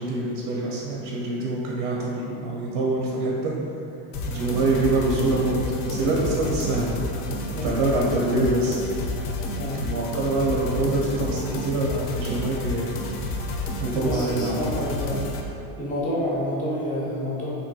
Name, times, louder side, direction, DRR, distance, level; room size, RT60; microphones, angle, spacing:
voice 1, 0.0-3.5 4.3-7.0 7.3-8.8 9.7-13.0 13.8-14.7, right 2 dB, 50° right, -3 dB, 0.5 m, -25 dB
sound 1, 4.1-15.4, left 2 dB, 70° left, 0.5 m, -31 dB
voice 2, 7.5-8.4 9.6-9.8 13.9-15.3 15.8-17.6, equal, 20° left, -6 dB, 0.4 m, -29 dB
2.9 x 2.6 x 2.6 m, 2.7 s
supercardioid pair, 130°, 49 cm